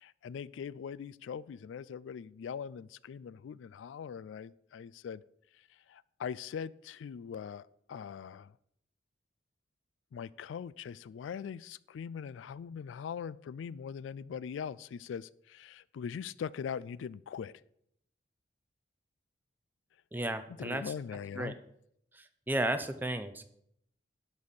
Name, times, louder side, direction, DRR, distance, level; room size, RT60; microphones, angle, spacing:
voice 1, 0.0-5.2 5.9-8.5 10.1-17.5 20.6-21.5, left 7 dB, 90° left, 21 dB, 0.3 m, -41 dB
voice 2, 20.1-20.9 21.3-21.5 22.1-23.4, right 1 dB, 10° right, 9 dB, 0.6 m, -34 dB
11.5 x 4.2 x 7.1 m, 0.74 s
head